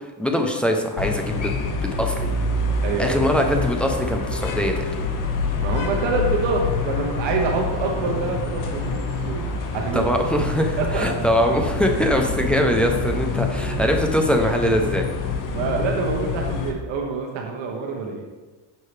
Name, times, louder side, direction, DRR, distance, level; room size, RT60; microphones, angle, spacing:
voice 1, 0.2-1.5 1.8-2.3 3.0-5.1 9.9-15.1, equal, ahead, 2 dB, 0.5 m, -22 dB
sound 1, 1.0-16.7, left 3 dB, 40° left, 0.8 m, -26 dB
voice 2, 2.8-3.3 5.6-9.4 9.7-10.1 10.8-11.1 13.9-14.0 15.5-18.2, right 4 dB, 60° right, 1 dB, 1.2 m, -26 dB
6.7 x 5.4 x 3.3 m, 1.3 s
cardioid pair, 120°, 49 cm